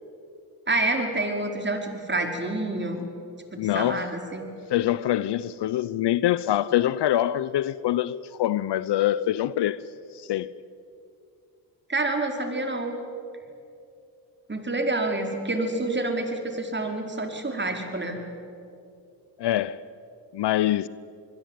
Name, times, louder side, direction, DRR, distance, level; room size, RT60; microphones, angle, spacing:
voice 1, 0.7-3.0 3.5-4.5 11.9-12.9 14.5-18.2, right 2 dB, 25° right, 5.0 m, -28 dB
voice 2, 3.6-4.1 4.7-9.8 10.1-10.5 19.4-19.8 20.3-20.9, left 13 dB, 60° left, 0.8 m, -24 dB
25.0 x 21.0 x 9.3 m
supercardioid pair, 65°, 45 cm